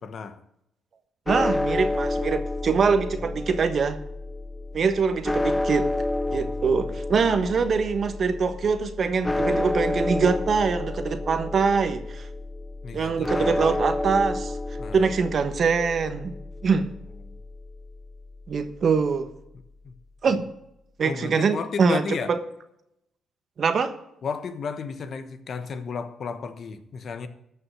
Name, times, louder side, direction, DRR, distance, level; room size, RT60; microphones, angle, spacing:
voice 1, 0.0-0.4 6.3-6.7 9.3-9.4 12.8-13.8 14.8-15.1 17.2-17.4 19.8-19.9 21.0-22.3 24.2-27.3, left 5 dB, 55° left, 10 dB, 1.2 m, -34 dB
sound 1, 1.3-19.5, left 2 dB, 15° left, 0.5 m, -30 dB
voice 2, 1.3-4.0 4.7-5.9 6.3-12.3 12.9-14.5 14.9-16.3 16.6-16.9 18.5-19.3 20.2-20.5 21.0-22.4 23.6-23.9, right 5 dB, 50° right, 9 dB, 1.2 m, -23 dB
13.5 x 5.8 x 8.0 m, 0.81 s
cardioid pair, 90°, 0 cm